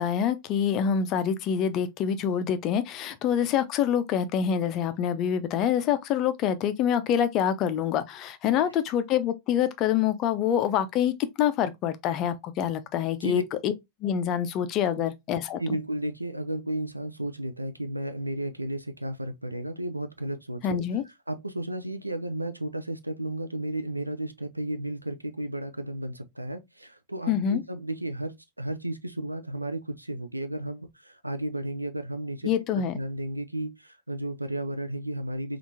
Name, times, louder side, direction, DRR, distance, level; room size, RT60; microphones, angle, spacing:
voice 1, 0.0-13.7 14.0-15.8 20.6-21.0 27.3-27.6 32.4-33.0, left 9 dB, 35° left, 0.5 m, -26 dB
voice 2, 15.6-20.8 21.3-35.6, right 1 dB, 85° right, 0.4 m, -33 dB
3.5 x 2.4 x 2.6 m
figure-of-eight pair, 90°, 0 cm